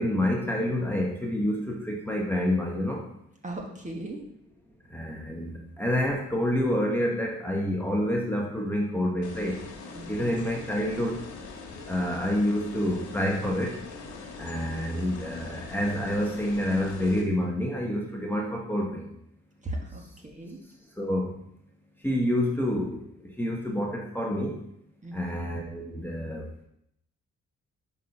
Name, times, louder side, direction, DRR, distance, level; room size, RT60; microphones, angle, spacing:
voice 1, 0.0-3.1 4.9-9.6 10.1-11.2 11.9-13.8 14.4-19.1 21.0-21.4 22.0-24.6 25.1-26.5, left 1 dB, 5° left, -1 dB, 1.0 m, -28 dB
voice 2, 3.4-4.3 9.9-10.3 19.6-20.6 25.0-25.4, right 1 dB, 25° right, 0 dB, 1.3 m, -38 dB
sound 1, 9.2-17.2, left 4 dB, 75° left, 1.5 m, -42 dB
5.4 x 4.2 x 5.2 m, 0.75 s
cardioid pair, 90°, 30 cm